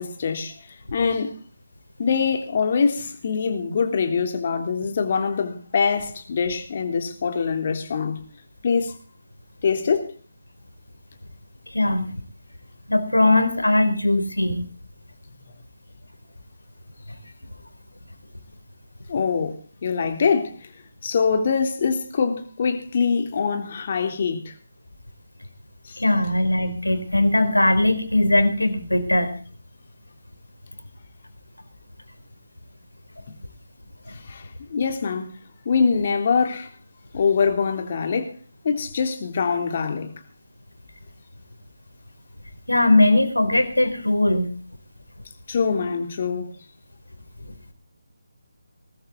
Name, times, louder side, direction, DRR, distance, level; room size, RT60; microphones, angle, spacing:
voice 1, 0.0-1.3 2.0-8.2 8.6-8.9 9.6-10.1 19.1-19.6 19.8-20.7 21.0-24.5 25.8-26.0 34.1-35.3 35.6-36.7 37.1-38.4 38.6-40.1 45.5-46.5, left 5 dB, 40° left, 3.3 m, -24 dB
voice 2, 11.7-12.1 12.9-14.6 26.0-29.3 42.7-44.6, left 1 dB, 90° left, 4.1 m, -20 dB
20.5 x 13.5 x 3.9 m
figure-of-eight pair, 155°, 0 cm